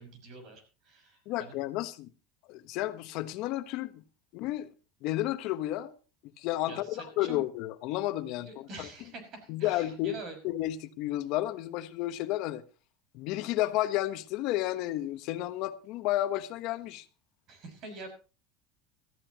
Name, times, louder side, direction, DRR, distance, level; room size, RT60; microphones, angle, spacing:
voice 1, 0.0-1.5 6.7-7.4 8.4-10.4 17.5-18.1, right 2 dB, 45° right, 5.9 m, -46 dB
voice 2, 1.3-2.1 2.5-4.0 4.3-4.7 5.0-5.9 6.4-8.9 9.5-12.6 13.1-17.0, left 15 dB, 60° left, 1.1 m, -32 dB
18.5 x 14.0 x 3.0 m
supercardioid pair, 135°, 0 cm